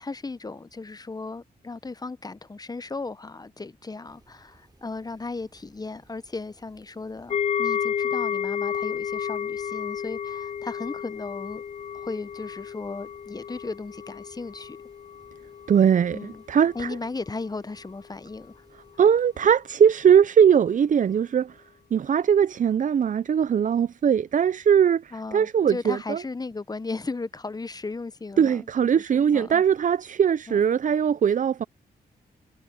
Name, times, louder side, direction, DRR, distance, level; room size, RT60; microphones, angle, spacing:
voice 1, 0.0-11.6 11.9-14.8 16.1-16.4 16.7-18.6 25.1-28.7 28.9-29.6 30.5-30.6, left 3 dB, 20° left, 0.8 m, -36 dB
sound 1, 4.0-19.6, right 2 dB, 25° right, 5.9 m, -60 dB
sound 2, 7.3-16.4 16.7-16.9 17.4-17.5, left 8 dB, 40° left, 0.4 m, -31 dB
voice 2, 15.7-16.9 19.0-21.6 21.9-26.2 28.4-31.6, right 8 dB, 50° right, 0.5 m, -20 dB
cardioid pair, 65°, 18 cm